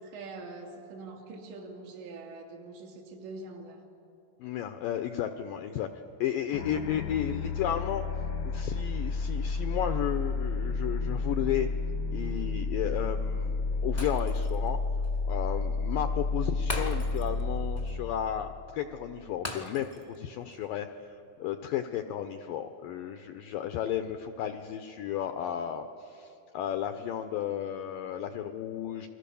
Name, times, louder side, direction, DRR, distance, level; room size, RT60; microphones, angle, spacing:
voice 1, 0.0-3.8, right 3 dB, 80° right, 1 dB, 4.7 m, -44 dB
voice 2, 4.4-5.9 6.2-8.0 8.4-11.7 12.1-14.8 15.3-19.9 20.2-20.9 21.4-29.1, left 10 dB, 85° left, 8 dB, 2.0 m, -33 dB
sound 1, 6.5-19.2, left 4 dB, 70° left, 1.1 m, -31 dB
Shatter, 14.0-14.7 15.0-15.2 16.7-17.5 17.8-17.9 19.4-20.2 20.5-20.7, left 2 dB, 30° left, 0.7 m, -39 dB
30.0 x 22.0 x 7.0 m, 2.8 s
omnidirectional pair, 4.9 m